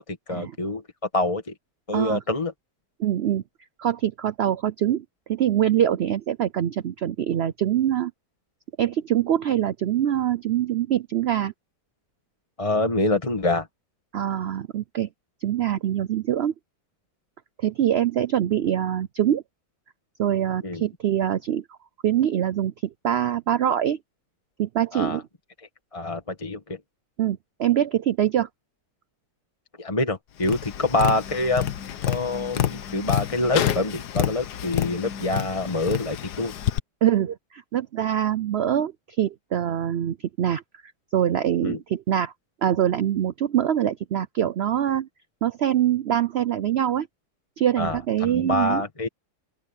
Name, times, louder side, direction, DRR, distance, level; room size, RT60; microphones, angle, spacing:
voice 1, 0.1-0.8 1.1-1.5 1.9-2.5 12.6-13.7 20.6-20.8 24.9-25.2 25.9-26.8 29.8-31.7 32.1-36.5 41.6-41.8 47.8-49.1, left 2 dB, 20° left, 1.5 m, -26 dB
voice 2, 3.0-3.4 3.8-8.1 8.8-11.5 14.1-15.1 15.4-16.5 17.6-19.4 20.2-21.6 22.0-24.0 24.6-25.2 27.2-28.5 37.0-40.6 41.1-42.3 42.6-45.1 45.4-47.1 47.6-48.8, right 10 dB, 80° right, 0.5 m, -24 dB
Tap, 30.4-36.8, left 11 dB, 80° left, 1.5 m, -28 dB
open air
omnidirectional pair, 1.7 m